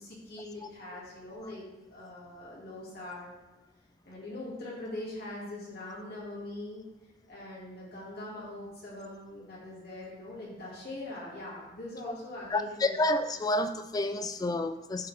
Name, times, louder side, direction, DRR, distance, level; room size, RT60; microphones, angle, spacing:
voice 1, 0.0-3.3 4.0-6.8 7.3-13.0, left 1 dB, 55° left, -7 dB, 2.6 m, -42 dB
voice 2, 12.5-15.1, left 2 dB, 20° left, 10 dB, 0.3 m, -29 dB
11.5 x 3.9 x 3.6 m, 1.0 s
head